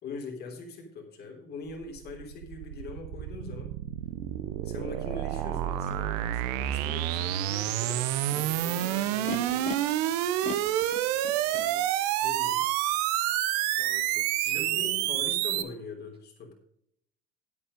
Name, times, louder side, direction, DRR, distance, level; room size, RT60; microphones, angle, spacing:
voice 1, 0.0-3.7 4.6-9.7 12.2-12.6 14.3-16.5, left 4 dB, 55° left, 1 dB, 3.3 m, -42 dB
sound 1, 1.7-15.6, right 13 dB, 85° right, 0.7 m, -29 dB
Animal, 5.9-6.0 6.7-7.3 8.1-9.8 10.4-11.7, left 8 dB, 35° left, 1.0 m, -40 dB
voice 2, 11.5-11.9 13.8-15.2, right 6 dB, 55° right, -1 dB, 1.8 m, -48 dB
9.2 x 8.5 x 5.1 m, 0.71 s
supercardioid pair, 80°, 20 cm